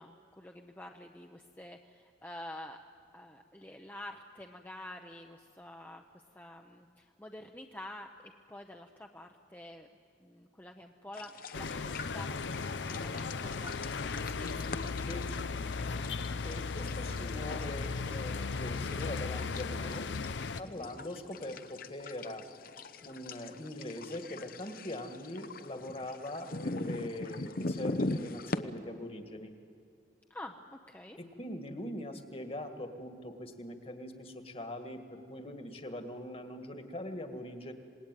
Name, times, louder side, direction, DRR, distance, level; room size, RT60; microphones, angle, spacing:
voice 1, 0.0-2.8 3.1-9.9 10.2-14.6 16.0-16.5 17.6-17.8 20.6-20.9 30.3-31.2, left 1 dB, 10° left, 2 dB, 0.8 m, -48 dB
sound 1, 11.1-28.6, left 2 dB, 55° left, 0.8 m, -42 dB
sound 2, 11.5-20.6, left 4 dB, 85° left, 0.7 m, -36 dB
voice 2, 15.0-15.7 16.4-20.1 20.6-22.5 23.0-29.5 31.2-37.7, left 1 dB, 30° left, 6 dB, 1.9 m, -42 dB
27.0 x 19.5 x 9.2 m, 2.3 s
head